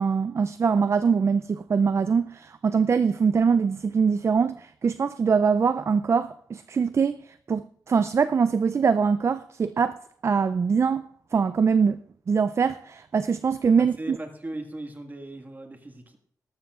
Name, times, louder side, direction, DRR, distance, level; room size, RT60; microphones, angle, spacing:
voice 1, 0.0-12.0 12.3-14.2, right 5 dB, 40° right, 0.4 m, -23 dB
voice 2, 13.8-16.2, right 1 dB, 25° right, 1.7 m, -38 dB
18.5 x 12.5 x 2.4 m
cardioid pair, 95°, 7 cm